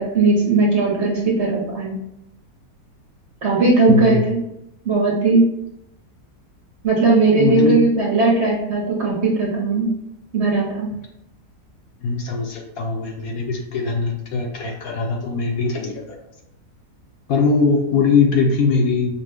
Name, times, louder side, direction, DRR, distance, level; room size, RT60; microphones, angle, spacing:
voice 1, 0.0-2.0 3.4-4.4 4.8-5.5 6.8-9.9 10.3-10.9, right 3 dB, 50° right, -4 dB, 1.0 m, -18 dB
voice 2, 3.9-4.2 7.4-7.8 12.0-16.2 17.3-19.1, left 4 dB, 70° left, 1 dB, 1.0 m, -21 dB
5.0 x 2.2 x 3.3 m, 0.82 s
omnidirectional pair, 1.7 m